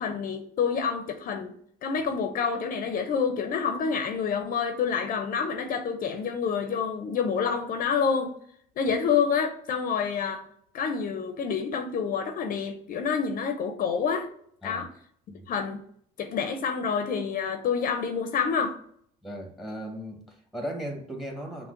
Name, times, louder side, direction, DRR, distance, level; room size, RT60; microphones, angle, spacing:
voice 1, 0.0-1.5 1.8-8.3 8.8-10.4 10.7-14.3 14.6-14.9 15.5-15.8 16.2-18.7, left 6 dB, 55° left, 6 dB, 0.6 m, -28 dB
voice 2, 19.2-21.7, equal, ahead, 2 dB, 1.2 m, -37 dB
5.7 x 2.1 x 3.8 m, 0.63 s
cardioid pair, 110°, 17 cm